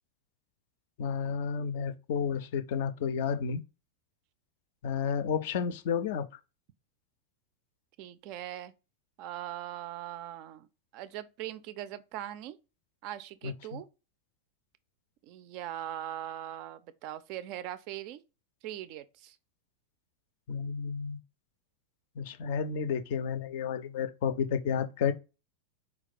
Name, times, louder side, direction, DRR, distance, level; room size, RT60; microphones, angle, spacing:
voice 1, 1.0-3.6 4.8-6.3 13.4-13.8 20.5-21.2 22.2-25.1, left 6 dB, 50° left, 0.4 m, -31 dB
voice 2, 8.0-8.7 9.2-10.7 10.9-12.6 13.0-13.9 15.2-18.2 18.6-19.4, right 12 dB, 45° right, 0.3 m, -40 dB
4.3 x 2.3 x 4.0 m
figure-of-eight pair, 90°, 0 cm